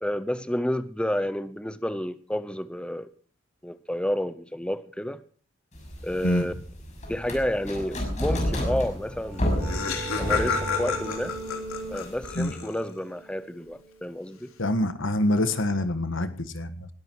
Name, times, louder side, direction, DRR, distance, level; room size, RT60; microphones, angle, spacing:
voice 1, 0.0-3.1 3.6-5.2 6.0-6.5 7.1-9.7 10.2-11.4 11.9-14.5, equal, 5° left, 0.7 m, -30 dB
sound 1, 5.8-12.4, equal, 35° left, 6.2 m, -31 dB
sound 2, 8.9-14.5, right 2 dB, 20° right, 1.8 m, -39 dB
Laughter, 9.0-9.1 9.3-13.0, left 6 dB, 85° left, 3.4 m, -31 dB
voice 2, 14.6-16.9, left 1 dB, 60° left, 1.7 m, -26 dB
20.5 x 13.5 x 4.7 m
head